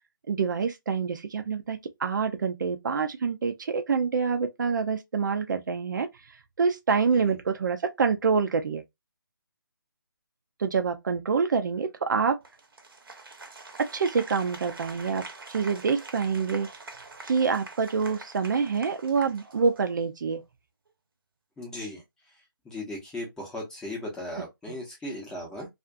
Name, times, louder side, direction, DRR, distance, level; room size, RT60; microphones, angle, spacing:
voice 1, 0.3-6.1 6.6-8.8 10.6-12.4 13.8-16.7 17.2-20.4 24.3-24.8, right 5 dB, 55° right, 0.4 m, -26 dB
Applause, 12.4-20.0, right 3 dB, 75° right, 0.8 m, -45 dB
voice 2, 21.6-22.0 22.6-25.7, left 1 dB, 5° left, 0.7 m, -37 dB
2.5 x 2.4 x 2.3 m
figure-of-eight pair, 150°, 12 cm